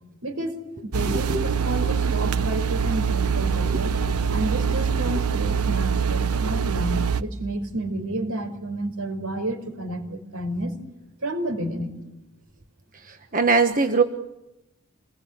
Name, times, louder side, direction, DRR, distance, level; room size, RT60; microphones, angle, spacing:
voice 1, 0.2-0.6 0.8-4.0 4.3-10.8 11.2-12.0, right 1 dB, 70° right, 6 dB, 4.9 m, -30 dB
sound 1, 0.9-7.2, right 6 dB, 90° right, 1.0 m, -24 dB
voice 2, 1.1-1.5 3.7-3.8 12.9-14.0, right 4 dB, 40° right, 6 dB, 1.3 m, -22 dB
27.5 x 21.0 x 9.8 m, 0.93 s
head